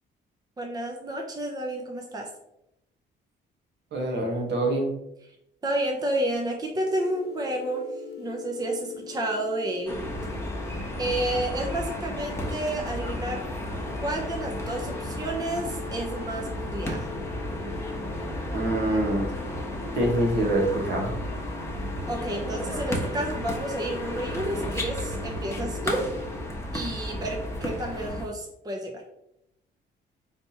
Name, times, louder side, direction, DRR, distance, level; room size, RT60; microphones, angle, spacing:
voice 1, 0.6-2.3 5.6-7.9 8.2-10.0 11.0-13.4 14.0-17.1 22.1-26.0 26.7-29.0, right 1 dB, 20° right, 1 dB, 0.7 m, -30 dB
voice 2, 3.9-4.9 18.5-19.2 19.9-21.1, right 1 dB, 60° right, 0 dB, 1.3 m, -25 dB
sound 1, 6.8-26.5, left 7 dB, 55° left, 0.7 m, -42 dB
sound 2, 9.9-28.2, equal, 15° left, 1.0 m, -33 dB
4.2 x 3.4 x 2.8 m, 0.82 s
cardioid pair, 90°, 20 cm